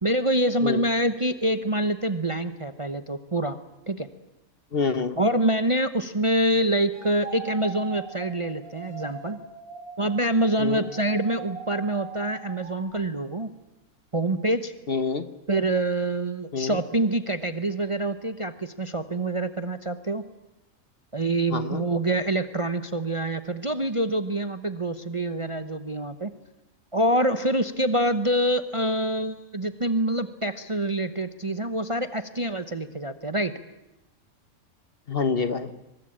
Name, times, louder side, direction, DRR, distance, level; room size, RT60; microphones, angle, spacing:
voice 1, 0.0-3.6 3.9-4.1 5.2-9.4 10.0-13.5 14.1-14.7 15.5-20.2 21.1-26.3 26.9-33.6, right 1 dB, 25° right, 11 dB, 0.8 m, -26 dB
voice 2, 4.7-5.2 10.6-10.9 14.9-15.3 16.5-16.8 21.5-21.8 35.1-35.7, left 5 dB, 45° left, 12 dB, 1.2 m, -27 dB
sound 1, 6.9-12.9, right 5 dB, 65° right, 5.5 m, -41 dB
23.5 x 20.5 x 8.8 m, 0.95 s
omnidirectional pair, 1.5 m